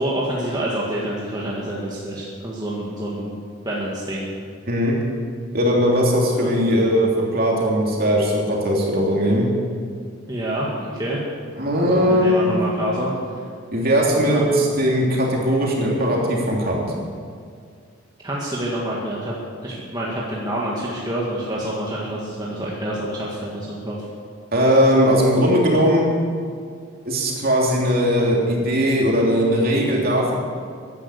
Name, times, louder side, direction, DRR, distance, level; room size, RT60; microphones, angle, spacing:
voice 1, 0.0-3.4 3.7-4.3 6.4-6.5 10.3-11.2 11.8-13.1 14.3-14.5 18.2-19.3 19.6-24.0, right 1 dB, 20° right, -5 dB, 1.7 m, -27 dB
voice 2, 4.7-5.0 5.5-9.5 11.6-12.6 13.7-16.8 24.5-26.1 27.0-30.3, equal, 45° right, -2 dB, 3.1 m, -19 dB
15.5 x 11.0 x 6.5 m, 2.2 s
head